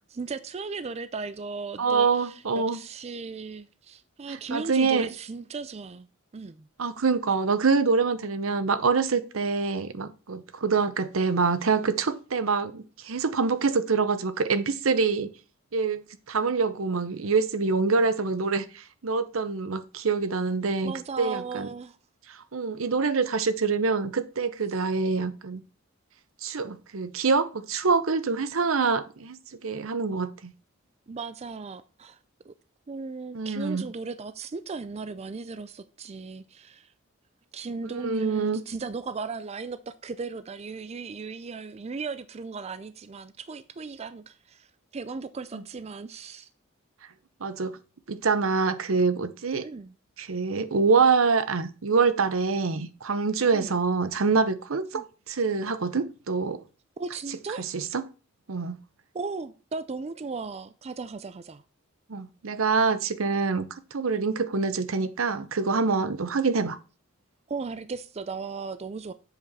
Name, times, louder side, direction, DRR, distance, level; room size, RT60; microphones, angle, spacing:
voice 1, 0.1-6.1 6.3-6.7 20.8-22.0 31.1-32.2 32.4-32.5 32.9-36.9 37.5-44.7 44.9-46.5 49.6-49.9 53.5-53.7 54.9-55.0 57.0-57.7 59.1-61.6 67.5-69.1, right 4 dB, 30° right, 0.4 m, -36 dB
voice 2, 1.8-2.8 4.3-5.1 6.8-15.3 15.7-16.0 16.3-21.7 22.3-25.6 26.4-30.5 33.3-33.9 37.9-38.6 45.5-45.6 47.4-47.7 48.1-49.7 50.2-56.6 57.6-58.0 58.5-58.8 62.1-66.8, right 4 dB, 80° right, 0.8 m, -25 dB
7.7 x 5.2 x 4.1 m
head